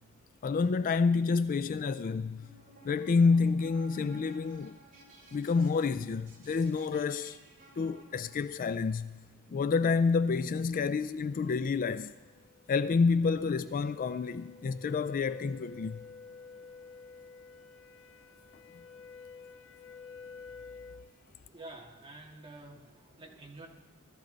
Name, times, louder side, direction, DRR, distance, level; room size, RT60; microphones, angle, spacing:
voice 1, 0.4-2.5 2.8-4.8 5.3-7.4 7.8-9.2 9.5-12.1 12.7-16.0, left 4 dB, 40° left, 0.3 m, -28 dB
sound 1, 2.3-8.6, right 1 dB, 40° right, 3.2 m, -56 dB
sound 2, 11.2-21.1, left 5 dB, 65° left, 1.1 m, -51 dB
voice 2, 21.5-23.7, right 2 dB, 25° right, 2.0 m, -49 dB
17.5 x 13.5 x 3.9 m
head